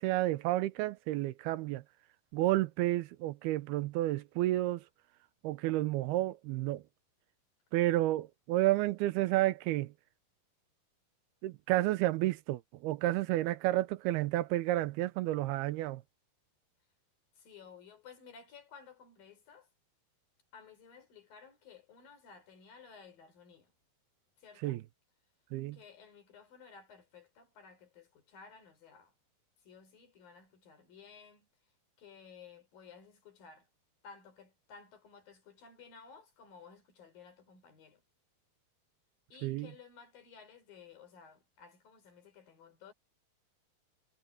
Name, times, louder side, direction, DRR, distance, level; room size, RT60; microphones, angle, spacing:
voice 1, 0.0-1.8 2.3-4.8 5.4-6.8 7.7-9.9 11.4-16.0 24.6-24.8 25.5-25.8 39.4-39.7, right 16 dB, 80° right, 2.8 m, -31 dB
voice 2, 17.4-19.7 20.5-23.7 24.4-24.8 25.7-29.1 29.6-31.5 32.0-33.7 34.0-38.0 39.3-42.9, left 6 dB, 65° left, 5.8 m, -55 dB
omnidirectional pair, 4.5 m